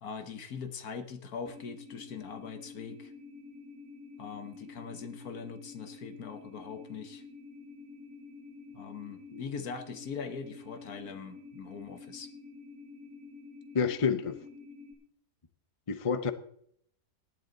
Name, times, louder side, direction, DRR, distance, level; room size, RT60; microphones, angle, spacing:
voice 1, 0.0-3.1 4.2-7.2 8.7-12.3, left 6 dB, 65° left, 9 dB, 1.6 m, -41 dB
sound 1, 1.4-14.9, left 4 dB, 65° right, 6.5 m, -49 dB
voice 2, 13.7-14.4 15.9-16.3, left 6 dB, 35° left, 11 dB, 0.5 m, -29 dB
18.5 x 10.5 x 4.0 m, 0.67 s
omnidirectional pair, 1.7 m